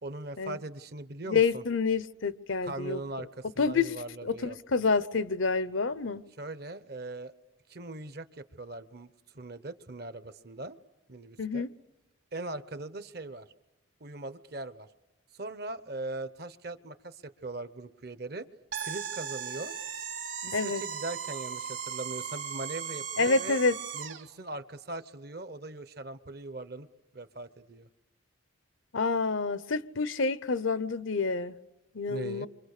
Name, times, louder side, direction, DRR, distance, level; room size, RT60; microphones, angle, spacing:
voice 1, 0.0-1.6 2.6-4.6 6.4-7.3 7.7-9.1 9.3-10.8 11.1-11.7 12.3-13.5 14.0-14.9 15.3-18.5 18.8-19.7 20.4-23.6 23.9-26.9 27.1-27.9 32.1-32.5, right 2 dB, 50° right, 0.9 m, -40 dB
voice 2, 1.3-3.0 3.6-3.9 4.2-6.2 11.4-11.7 20.5-20.8 23.2-23.8 28.9-31.6 31.9-32.5, left 4 dB, 75° left, 0.8 m, -28 dB
sound 1, 18.7-24.3, right 7 dB, 65° right, 2.3 m, -37 dB
28.5 x 25.0 x 6.6 m
head